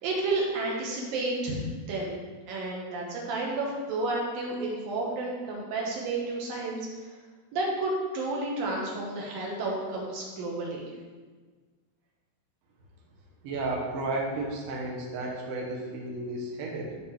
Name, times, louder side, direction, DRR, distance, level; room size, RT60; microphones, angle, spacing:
voice 1, 0.0-1.6 1.9-2.2 2.5-6.9 7.5-10.8, right 2 dB, 70° right, -3 dB, 2.3 m, -31 dB
voice 2, 13.4-17.0, right 2 dB, 85° right, -3 dB, 1.8 m, -33 dB
13.0 x 4.4 x 3.5 m, 1.4 s
omnidirectional pair, 5.8 m